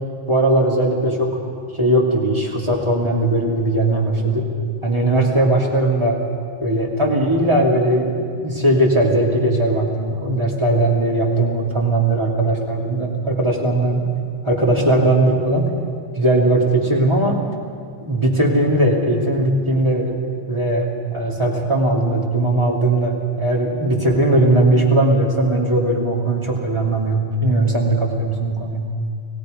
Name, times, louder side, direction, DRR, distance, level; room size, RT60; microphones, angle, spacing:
voice 1, 0.3-1.3 1.8-4.4 4.8-6.2 6.6-14.1 14.4-15.7 16.1-17.4 18.0-20.2 20.5-28.9, right 1 dB, 25° right, -3 dB, 2.9 m, -18 dB
30.0 x 18.0 x 5.2 m, 2.3 s
omnidirectional pair, 1.1 m